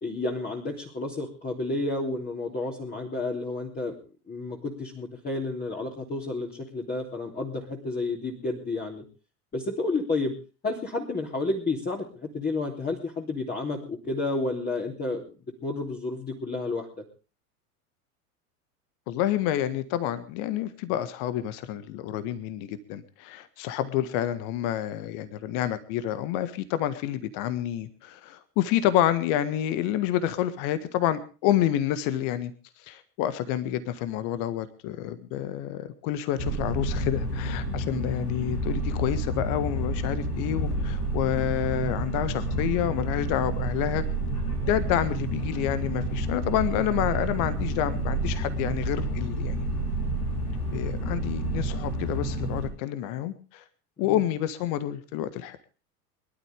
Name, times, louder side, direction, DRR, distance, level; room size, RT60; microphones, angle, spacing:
voice 1, 0.0-3.9 4.3-9.0 9.5-10.3 10.6-15.2 15.6-16.9 54.0-54.2, left 2 dB, 20° left, -2 dB, 3.2 m, -31 dB
voice 2, 19.1-32.5 32.8-44.0 44.7-49.7 50.7-53.6 54.0-55.6, left 12 dB, 45° left, 13 dB, 1.6 m, -28 dB
sound 1, 36.4-52.7, right 1 dB, 80° left, 6.2 m, -29 dB
24.0 x 12.5 x 3.5 m, 0.35 s
figure-of-eight pair, 80°, 45 cm